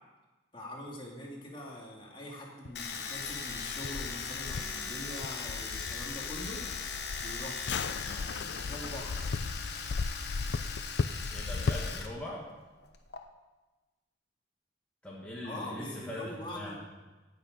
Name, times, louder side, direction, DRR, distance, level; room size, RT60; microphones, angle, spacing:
voice 1, 0.5-6.6 7.2-9.1 15.4-16.8, left 1 dB, 25° left, -2 dB, 2.2 m, -43 dB
sound 1, 2.7-12.1, left 4 dB, 80° left, 0.5 m, -37 dB
Domestic sounds home sounds, 2.8-12.1 12.3-13.2, left 6 dB, 60° left, 1.0 m, -39 dB
voice 2, 11.3-12.5 15.0-16.2 16.6-16.8, left 1 dB, 5° left, -6 dB, 1.8 m, -41 dB
17.5 x 6.7 x 5.2 m, 1.2 s
head